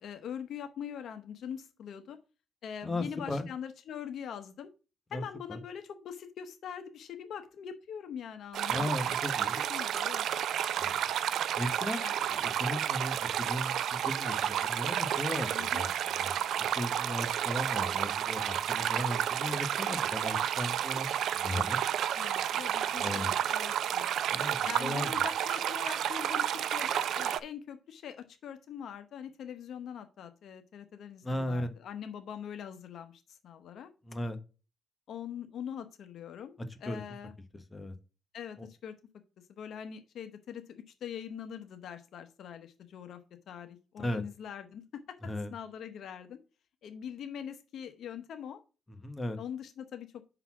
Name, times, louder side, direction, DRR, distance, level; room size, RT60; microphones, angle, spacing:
voice 1, 0.0-2.2 2.6-4.7 5.1-8.9 9.5-10.2 12.0-12.1 15.5-15.8 22.1-24.1 24.6-33.9 35.1-36.5 36.8-37.3 38.3-39.0 39.5-43.2 43.5-45.2 45.5-46.4 46.8-48.6 49.4-50.2, left 8 dB, 70° left, 0.9 m, -43 dB
voice 2, 2.8-3.5 5.1-5.2 5.5-5.6 8.7-9.6 10.8-11.1 11.6-12.0 12.3-21.8 23.0-23.4 24.3-25.1 31.2-31.7 34.0-34.4 36.6-37.0 37.7-37.9 38.6-38.7 44.0-44.2 45.2-45.5 48.9-49.4, left 1 dB, 20° left, 1.1 m, -36 dB
sound 1, 8.5-27.4, right 10 dB, 75° right, 0.4 m, -31 dB
5.7 x 4.0 x 5.9 m
cardioid pair, 90°, 0 cm